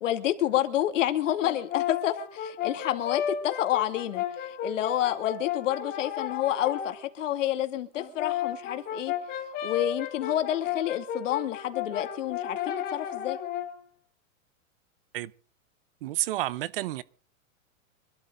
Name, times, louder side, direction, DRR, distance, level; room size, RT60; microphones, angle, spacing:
voice 1, 0.0-9.1 9.6-13.4, left 12 dB, 60° left, 2.7 m, -29 dB
Brass instrument, 1.4-7.0 7.9-13.8, left 9 dB, 20° left, 3.5 m, -34 dB
voice 2, 16.0-17.0, right 15 dB, 40° right, 0.8 m, -30 dB
26.0 x 13.0 x 3.9 m
supercardioid pair, 160°, 42 cm